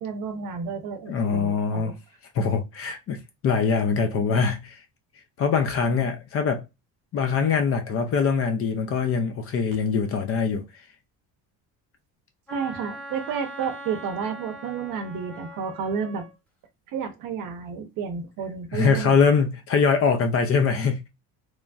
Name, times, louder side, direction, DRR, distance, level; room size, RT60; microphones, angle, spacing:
voice 1, 0.0-1.9 5.9-6.0 12.5-16.2 16.9-19.2, right 6 dB, 55° right, 0.7 m, -31 dB
voice 2, 1.1-1.9 2.3-3.2 3.4-4.8 5.4-6.6 7.1-10.6 18.7-21.1, left 5 dB, 40° left, 0.4 m, -23 dB
Wind instrument woodwind instrument, 12.5-16.3, right 1 dB, 5° left, 1.0 m, -41 dB
3.0 x 2.4 x 2.3 m
cardioid pair, 160°, 38 cm